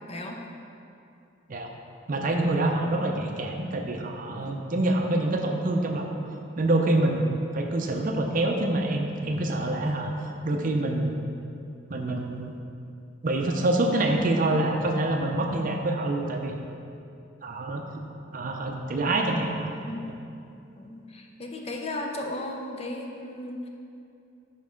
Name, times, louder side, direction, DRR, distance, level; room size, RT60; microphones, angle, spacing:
voice 1, 0.1-0.4 4.2-4.6 9.2-9.5 19.8-20.1 20.8-23.7, left 1 dB, 35° left, 1 dB, 0.5 m, -36 dB
voice 2, 2.1-6.1 6.6-10.1 10.4-11.2 11.9-12.6 13.2-16.5 17.4-17.8 18.3-19.7, right 2 dB, 45° right, 2 dB, 0.5 m, -26 dB
5.2 x 4.6 x 5.1 m, 2.6 s
head